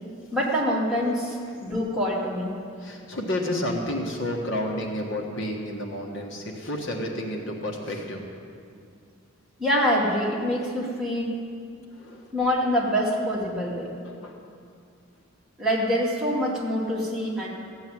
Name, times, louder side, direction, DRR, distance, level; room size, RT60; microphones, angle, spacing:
voice 1, 0.3-2.6 9.6-11.4 12.3-13.9 15.6-17.5, equal, ahead, -6 dB, 2.5 m, -25 dB
voice 2, 2.8-8.3 11.9-12.3 14.0-14.4, left 1 dB, 60° left, 1 dB, 1.5 m, -31 dB
15.5 x 8.0 x 9.3 m, 2.3 s
head